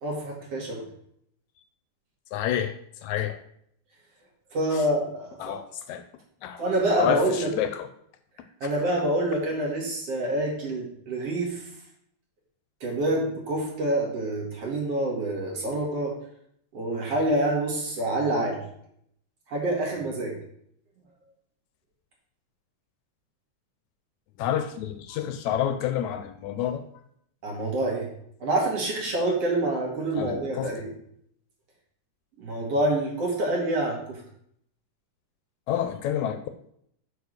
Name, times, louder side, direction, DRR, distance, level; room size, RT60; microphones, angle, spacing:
voice 1, 0.0-0.8 4.5-5.6 6.6-7.5 8.6-11.6 12.8-16.1 16.7-18.6 19.5-20.3 27.4-28.1 28.4-30.9 32.4-34.2, right 1 dB, 55° right, -1 dB, 2.9 m, -27 dB
voice 2, 2.3-2.8 3.0-3.4 4.7-4.8 5.4-6.1 6.4-6.6 6.9-7.9 24.4-26.8 30.2-30.8 35.7-36.4, left 10 dB, 80° left, 9 dB, 1.9 m, -29 dB
7.1 x 4.6 x 6.5 m, 0.69 s
omnidirectional pair, 3.5 m